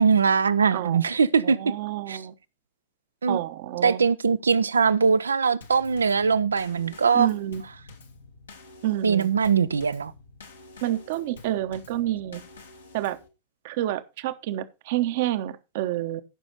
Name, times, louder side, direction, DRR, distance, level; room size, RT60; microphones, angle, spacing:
voice 1, 0.0-1.6 2.1-2.2 3.2-3.4 3.8-7.3 9.0-10.1, right 5 dB, 75° right, 0.6 m, -21 dB
voice 2, 1.4-2.3 3.3-4.0 7.1-7.6 8.8-9.3 10.8-12.4 12.9-13.2 13.6-16.2, right 13 dB, 50° right, 1.0 m, -28 dB
Drum kit / Snare drum / Bass drum, 5.6-13.3, left 3 dB, 75° left, 2.1 m, -48 dB
15.0 x 6.2 x 4.2 m
figure-of-eight pair, 90°, 0 cm